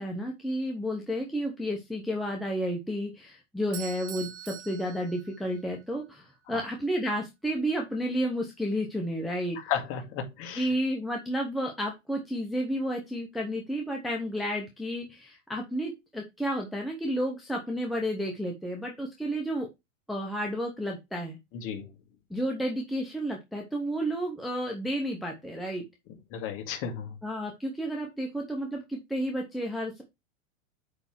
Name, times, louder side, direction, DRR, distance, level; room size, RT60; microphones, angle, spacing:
voice 1, 0.0-9.6 10.6-19.7 20.1-21.4 22.3-25.8 27.2-30.0, equal, ahead, 0.7 m, -31 dB
Bell / Doorbell, 3.7-5.8, right 10 dB, 60° right, 1.7 m, -43 dB
voice 2, 9.7-10.7 21.5-21.9 26.3-27.2, left 8 dB, 30° left, 1.8 m, -33 dB
8.5 x 3.4 x 4.4 m
hypercardioid pair, 150°, 41 cm